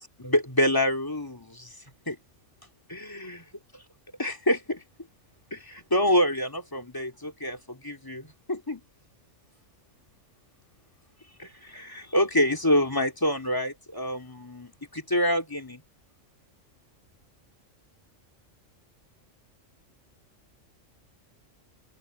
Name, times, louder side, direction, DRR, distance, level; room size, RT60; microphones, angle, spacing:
voice 1, 0.2-1.7 2.1-2.2 2.9-3.4 4.2-4.8 5.5-8.8 11.4-15.8, left 1 dB, 15° left, 2.9 m, -27 dB
omnidirectional pair, 1.3 m